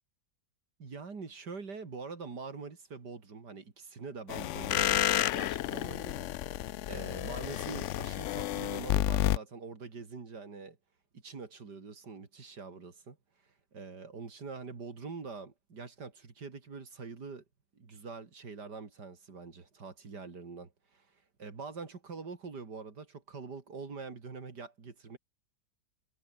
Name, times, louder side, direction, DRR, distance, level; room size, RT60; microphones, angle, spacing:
voice 1, 0.8-5.0 5.3-10.8 11.1-13.2 13.7-17.4 17.7-21.1 21.4-25.2, right 4 dB, 75° right, 3.4 m, -44 dB
sound 1, 4.3-9.4, left 13 dB, 75° left, 0.6 m, -31 dB
omnidirectional pair, 1.8 m